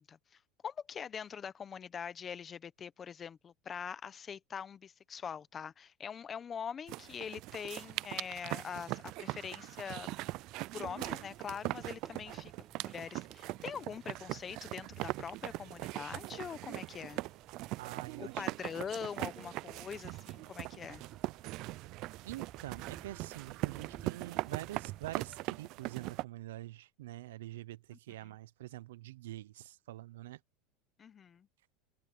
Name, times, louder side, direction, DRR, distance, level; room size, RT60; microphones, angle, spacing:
voice 1, 0.0-10.1 10.7-17.2 18.2-21.0 28.2-28.3 31.0-31.5, left 7 dB, 25° left, 1.1 m, -43 dB
sound 1, 6.9-26.2, right 19 dB, 55° right, 0.5 m, -41 dB
sound 2, 9.9-25.4, right 6 dB, 25° right, 7.1 m, -59 dB
voice 2, 17.8-18.4 22.2-30.4, right 15 dB, 90° right, 0.7 m, -46 dB
supercardioid pair, 125°, 0 cm